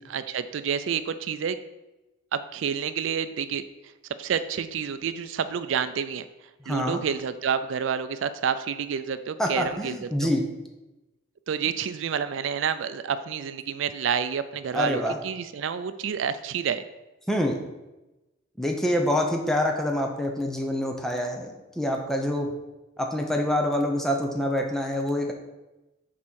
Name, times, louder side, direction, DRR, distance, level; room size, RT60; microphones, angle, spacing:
voice 1, 0.1-1.6 2.3-3.6 4.2-6.3 6.7-10.3 11.5-16.9, right 7 dB, 80° right, 12 dB, 0.4 m, -29 dB
voice 2, 6.6-7.0 9.4-10.4 14.7-15.2 17.3-17.6 18.6-22.5 23.0-25.3, left 1 dB, ahead, 2 dB, 0.8 m, -26 dB
6.0 x 4.3 x 6.2 m, 1.0 s
head